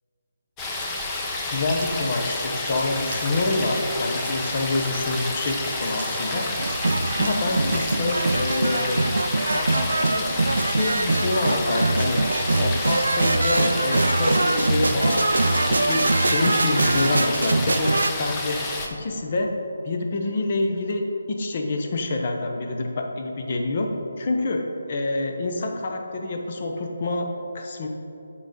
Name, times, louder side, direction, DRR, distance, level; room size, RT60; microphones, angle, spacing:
sound 1, 0.6-18.9, left 2 dB, 15° left, 0.8 m, -30 dB
voice 1, 1.5-6.5 7.1-9.0 9.5-10.3 10.6-12.2 12.6-17.9 18.2-18.6 18.9-19.5 19.8-23.9 24.2-27.3 27.5-27.9, left 2 dB, 45° left, 3 dB, 0.9 m, -27 dB
sound 2, 1.7-8.0, right 3 dB, 55° right, 0.8 m, -40 dB
sound 3, 6.6-18.1, right 2 dB, 75° right, 0.3 m, -23 dB
7.5 x 4.9 x 5.2 m, 2.8 s
figure-of-eight pair, 155°, 0 cm